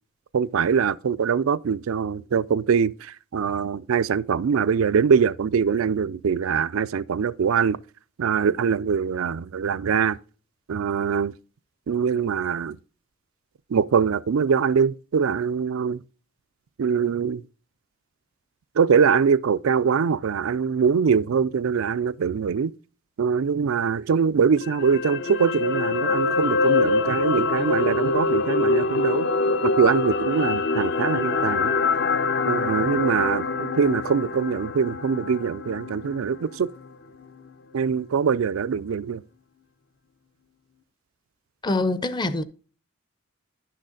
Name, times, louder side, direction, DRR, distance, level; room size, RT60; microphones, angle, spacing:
voice 1, 0.3-7.8 8.2-10.2 10.7-11.3 11.9-12.8 13.7-16.0 16.8-17.4 18.8-22.7 23.2-31.8 32.5-36.7 37.7-39.2, right 6 dB, 85° right, 0.4 m, -23 dB
sound 1, 24.6-36.9 37.2-37.4, left 3 dB, 55° left, 0.7 m, -25 dB
voice 2, 41.6-42.4, left 2 dB, 20° left, 0.6 m, -24 dB
10.5 x 6.5 x 3.8 m
head